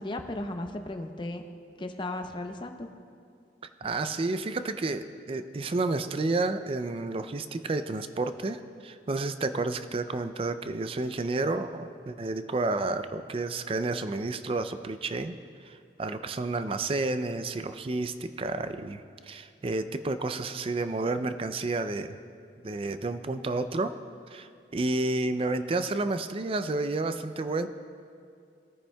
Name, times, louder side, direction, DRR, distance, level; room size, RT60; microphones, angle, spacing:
voice 1, 0.0-1.4 1.8-2.9, left 1 dB, 30° left, 5 dB, 0.6 m, -35 dB
voice 2, 3.8-15.3 15.6-22.2 22.6-23.9 24.3-27.7, right 2 dB, 30° right, 10 dB, 0.4 m, -30 dB
20.0 x 9.9 x 2.3 m, 2.4 s
head